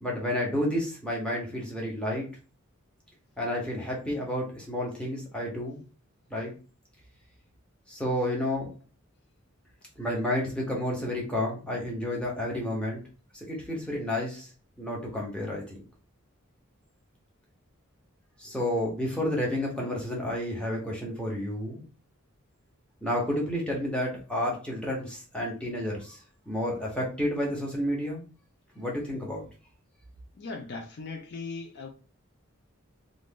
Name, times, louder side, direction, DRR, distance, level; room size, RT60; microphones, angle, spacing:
voice 1, 0.0-2.3 3.4-5.8 6.3-6.5 7.9-8.7 10.0-13.0 13.5-14.5 14.8-15.8 18.4-21.8 23.0-26.2 26.5-28.2 28.8-29.4, left 1 dB, 5° left, 0.9 m, -30 dB
voice 2, 30.4-31.9, left 4 dB, 55° left, 0.4 m, -38 dB
2.5 x 2.5 x 3.5 m
head